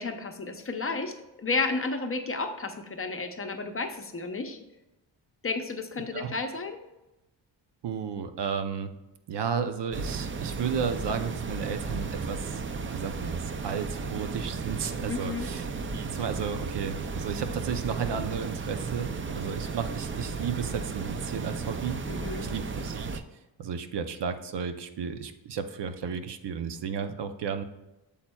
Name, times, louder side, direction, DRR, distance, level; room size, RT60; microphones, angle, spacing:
voice 1, 0.0-4.6 5.4-6.8 15.1-15.5 22.1-22.5, left 3 dB, 30° left, 6 dB, 0.7 m, -32 dB
voice 2, 7.8-8.9 9.3-12.6 12.9-15.7 15.9-22.0 22.5-23.2 23.6-27.6, right 6 dB, 65° right, 9 dB, 0.7 m, -33 dB
sound 1, 9.9-23.2, right 4 dB, 30° right, 0.4 m, -34 dB
8.5 x 7.3 x 2.3 m, 1.0 s
wide cardioid pair, 125°, 45 cm